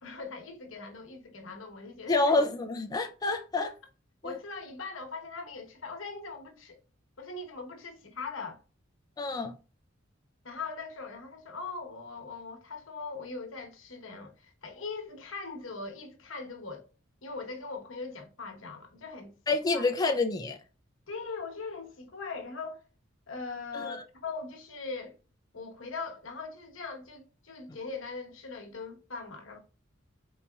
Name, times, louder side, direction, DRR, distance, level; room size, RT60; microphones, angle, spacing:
voice 1, 0.0-2.3 4.2-6.8 7.2-8.6 10.4-16.8 17.2-19.3 19.7-19.9 21.1-22.8 23.3-25.2 25.5-29.6, left 4 dB, 85° left, 1.1 m, -40 dB
voice 2, 2.1-3.7 4.2-4.3 9.2-9.5 19.5-20.6 23.7-24.0, left 3 dB, 20° left, 0.4 m, -28 dB
4.1 x 4.0 x 2.3 m
head